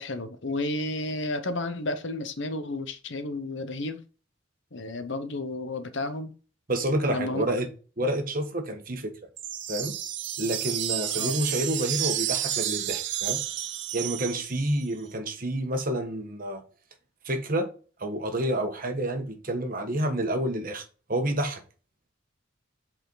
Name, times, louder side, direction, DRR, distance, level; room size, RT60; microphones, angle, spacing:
voice 1, 0.0-4.0 4.7-6.3 7.1-7.4 11.1-11.4, left 2 dB, 60° left, 0.9 m, -32 dB
voice 2, 6.7-7.7 8.0-9.1 9.7-10.0 10.4-13.4 13.9-16.6 17.2-17.7 18.0-20.8 21.1-21.6, right 1 dB, 45° right, 1.3 m, -29 dB
sound 1, 9.4-14.8, right 12 dB, 60° right, 0.7 m, -31 dB
8.0 x 4.4 x 4.0 m
head